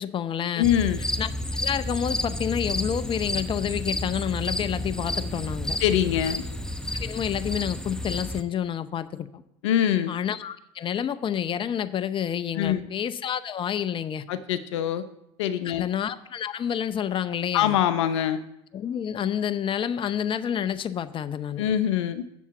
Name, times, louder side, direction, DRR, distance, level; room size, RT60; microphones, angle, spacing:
voice 1, 0.0-0.7 1.2-1.3 1.6-5.8 6.9-9.4 10.1-14.2 15.6-17.8 18.7-21.6, left 9 dB, 35° left, 12 dB, 0.7 m, -29 dB
voice 2, 0.6-1.0 5.8-6.4 9.6-10.1 12.6-12.8 14.3-15.0 15.4-15.8 17.5-18.4 21.6-22.2, left 10 dB, 75° left, 12 dB, 0.7 m, -23 dB
sound 1, 0.6-8.4, left 1 dB, 5° left, 0.8 m, -31 dB
7.2 x 7.1 x 7.0 m, 0.80 s
hypercardioid pair, 70°, 15 cm